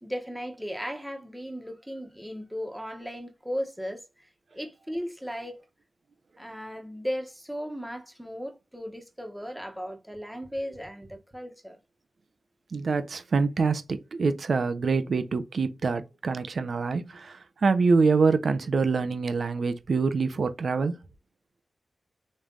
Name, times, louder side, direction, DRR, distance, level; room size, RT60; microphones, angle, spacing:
voice 1, 0.0-5.6 6.4-11.8, equal, 5° right, 1.2 m, -36 dB
voice 2, 12.7-21.0, right 4 dB, 65° right, 0.7 m, -25 dB
5.3 x 3.3 x 2.5 m
wide cardioid pair, 90°, 0 cm